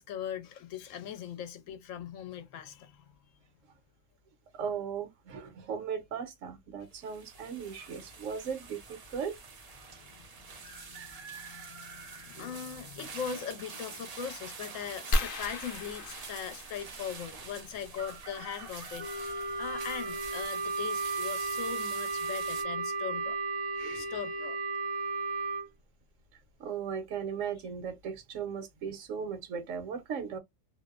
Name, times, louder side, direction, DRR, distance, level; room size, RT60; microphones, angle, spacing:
voice 1, 0.0-3.1 10.0-23.4 23.9-24.6, left 8 dB, 75° left, 1.0 m, -40 dB
voice 2, 4.5-9.4 12.4-12.5 23.8-24.1 26.6-30.4, right 7 dB, 75° right, 1.1 m, -37 dB
sound 1, 6.9-22.6, right 4 dB, 50° right, 0.4 m, -46 dB
sound 2, 15.1-17.5 19.1-19.3 19.9-20.0 20.2-20.5, equal, 55° left, 0.7 m, -34 dB
Wind instrument woodwind instrument, 19.0-25.7, right 3 dB, 10° left, 0.6 m, -34 dB
2.7 x 2.0 x 2.3 m
omnidirectional pair, 1.4 m